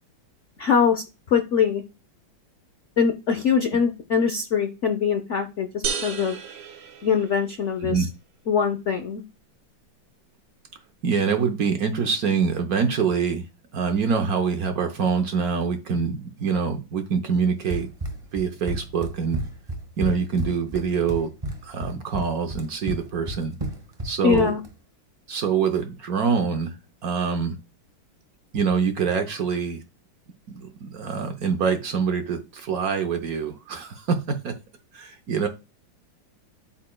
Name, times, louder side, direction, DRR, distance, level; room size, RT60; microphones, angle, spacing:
voice 1, 0.6-1.8 3.0-6.4 7.0-8.1 8.5-9.2 24.2-24.6, left 6 dB, 80° left, 7 dB, 0.6 m, -23 dB
sound 1, 5.8-7.7, right 6 dB, 75° right, 1.8 m, -32 dB
voice 2, 11.0-13.4 13.7-17.9 18.3-19.4 20.0-21.3 21.6-23.5 24.0-24.5 25.3-26.7 27.0-27.6 28.5-29.8 30.5-34.6 34.9-35.5, right 6 dB, 60° right, 6 dB, 1.0 m, -25 dB
Run, 17.7-24.7, right 1 dB, 25° right, 0.8 m, -32 dB
12.5 x 4.3 x 2.2 m, 0.28 s
omnidirectional pair, 2.2 m